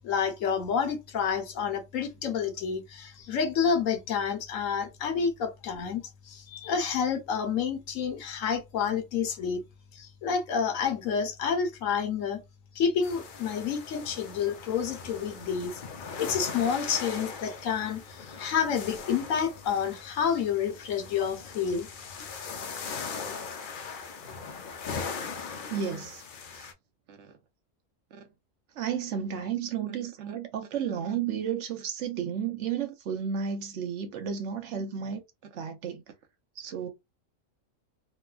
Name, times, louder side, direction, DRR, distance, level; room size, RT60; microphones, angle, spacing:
voice 1, 0.0-9.6 9.9-12.4 12.7-15.8 16.2-21.9, left 7 dB, 80° left, 1.1 m, -29 dB
sound 1, 13.0-26.7, left 5 dB, 60° left, 0.5 m, -40 dB
voice 2, 25.7-26.2 26.5-26.7 27.1-27.3 28.1-28.2 28.8-35.2 35.5-36.0 36.6-36.9, right 8 dB, 65° right, 0.9 m, -32 dB
3.0 x 2.2 x 2.3 m
omnidirectional pair, 1.4 m